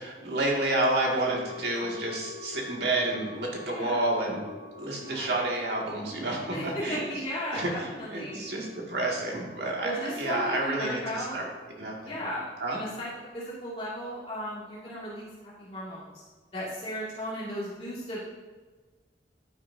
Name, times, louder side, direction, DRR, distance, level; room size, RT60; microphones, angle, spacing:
voice 1, 0.0-4.4 4.8-7.0 7.5-11.5 11.8-12.2 12.6-12.8, right 2 dB, 75° right, -2 dB, 2.4 m, -30 dB
sound 1, 1.2-11.5 11.7-11.8, left 5 dB, 40° right, 1.5 m, -48 dB
voice 2, 3.6-4.1 5.0-5.3 6.5-8.4 9.8-11.4 12.0-12.4 12.7-13.1 13.3-16.2 16.5-18.3, equal, 35° left, -9 dB, 2.6 m, -35 dB
11.5 x 9.9 x 2.8 m, 1.4 s
head